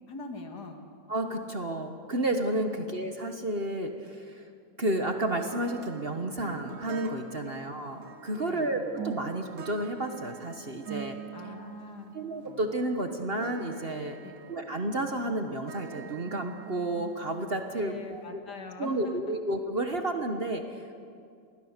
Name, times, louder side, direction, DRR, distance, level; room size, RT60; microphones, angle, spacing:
voice 1, 0.1-0.8 2.7-2.8 7.4-7.5 8.3-8.7 11.3-12.1 14.2-14.4 17.7-19.2, left 4 dB, 65° left, 4 dB, 2.5 m, -42 dB
voice 2, 1.1-4.4 4.8-11.2 12.1-14.2 14.5-18.4 18.8-20.9, right 1 dB, 35° right, 5 dB, 1.3 m, -31 dB
sound 1, 5.2-18.2, right 7 dB, 85° right, 2.1 m, -45 dB
26.5 x 20.0 x 6.7 m, 2.4 s
omnidirectional pair, 1.9 m